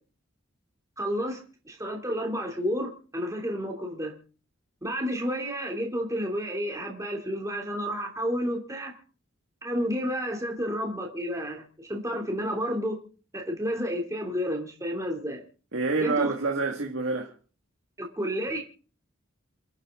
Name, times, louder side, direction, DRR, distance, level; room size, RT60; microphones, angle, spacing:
voice 1, 1.0-1.4 1.6-4.1 4.8-8.9 9.6-13.0 13.3-15.4 16.0-16.3 18.0-18.6, equal, 15° right, 2.9 m, -31 dB
voice 2, 15.7-17.3, right 3 dB, 65° right, 2.1 m, -27 dB
28.5 x 9.7 x 3.8 m
head